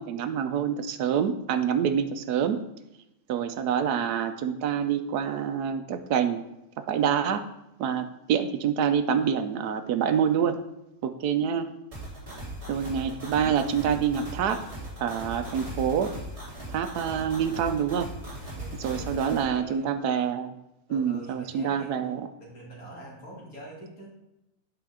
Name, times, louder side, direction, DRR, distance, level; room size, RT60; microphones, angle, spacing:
voice 1, 0.0-2.6 3.3-6.4 6.9-7.4 7.8-10.5 11.0-11.7 12.7-14.6 15.0-16.1 16.7-18.1 18.8-20.5 20.9-22.3, right 8 dB, 80° right, 9 dB, 1.1 m, -26 dB
sound 1, 11.9-19.4, right 1 dB, 40° right, 3.2 m, -38 dB
voice 2, 18.5-19.9 20.9-21.9 22.4-24.1, right 1 dB, 60° left, -3 dB, 2.5 m, -45 dB
8.9 x 5.0 x 3.6 m, 0.90 s
omnidirectional pair, 1.7 m